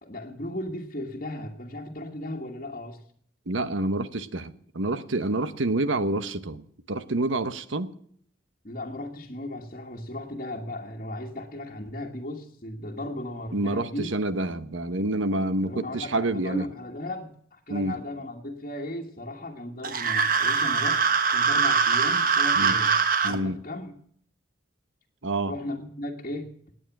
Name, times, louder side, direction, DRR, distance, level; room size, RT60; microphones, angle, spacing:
voice 1, 0.0-3.0 8.6-14.1 15.6-21.0 21.3-22.9 23.2-24.0 25.5-26.5, left 1 dB, 40° left, 1.5 m, -36 dB
voice 2, 3.5-7.9 13.5-16.6 17.7-18.0 22.5-22.7 23.2-23.6 25.2-25.5, right 2 dB, 85° right, 1.0 m, -28 dB
sound 1, 19.8-23.3, right 5 dB, 45° right, 1.2 m, -22 dB
18.5 x 9.2 x 6.0 m
head